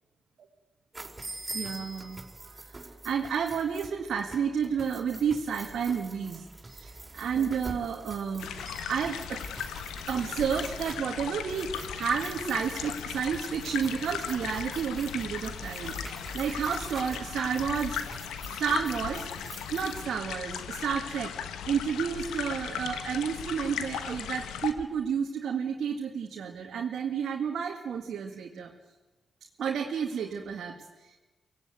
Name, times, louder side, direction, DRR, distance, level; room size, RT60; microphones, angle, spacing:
sound 1, 0.9-20.0, right 2 dB, 35° right, 4.7 m, -45 dB
voice 1, 1.5-8.5 8.9-9.4 10.1-18.0 18.5-19.3 19.7-21.3 21.7-28.7 29.6-31.2, right 7 dB, 75° right, 1 dB, 2.0 m, -31 dB
sound 2, 8.4-24.7, left 8 dB, 85° left, 1.3 m, -37 dB
24.5 x 18.0 x 9.4 m, 1.2 s
hypercardioid pair, 40°, 0 cm